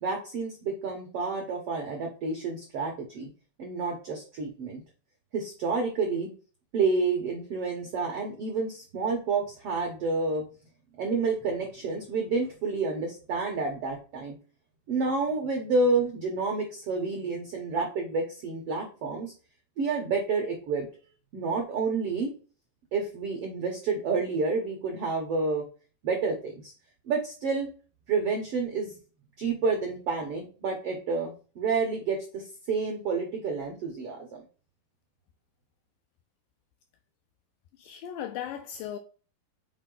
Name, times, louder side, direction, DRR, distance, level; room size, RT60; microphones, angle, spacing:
voice 1, 0.0-3.3 3.6-4.8 5.3-6.3 6.7-10.4 11.0-14.4 14.9-19.3 19.8-20.9 21.3-22.3 22.9-25.6 26.0-26.7 27.0-27.7 28.1-29.0 29.4-34.3, right 4 dB, 75° right, 1.3 m, -29 dB
voice 2, 37.8-39.0, left 10 dB, 80° left, 2.0 m, -37 dB
6.3 x 4.5 x 3.9 m
omnidirectional pair, 4.3 m